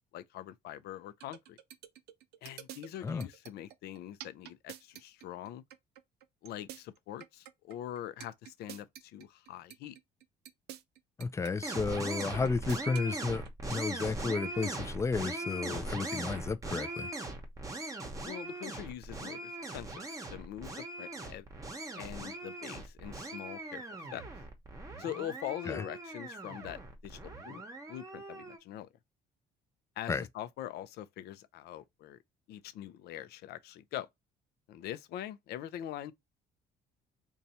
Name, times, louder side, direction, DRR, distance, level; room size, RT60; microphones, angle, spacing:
voice 1, 0.1-1.6 2.4-5.6 6.4-10.0 18.2-21.5 22.0-23.8 24.1-24.2 25.0-27.6 27.9-28.9 30.0-32.2 32.5-34.1 34.7-36.1, left 11 dB, 75° left, 0.5 m, -43 dB
sound 1, 1.2-14.2, right 12 dB, 75° right, 0.5 m, -48 dB
voice 2, 11.2-17.1 25.7-25.8 30.1-30.3, left 4 dB, 15° left, 0.4 m, -33 dB
sound 2, 11.6-28.6, right 2 dB, 20° right, 0.9 m, -40 dB
2.7 x 2.3 x 4.1 m
cardioid pair, 110°, 17 cm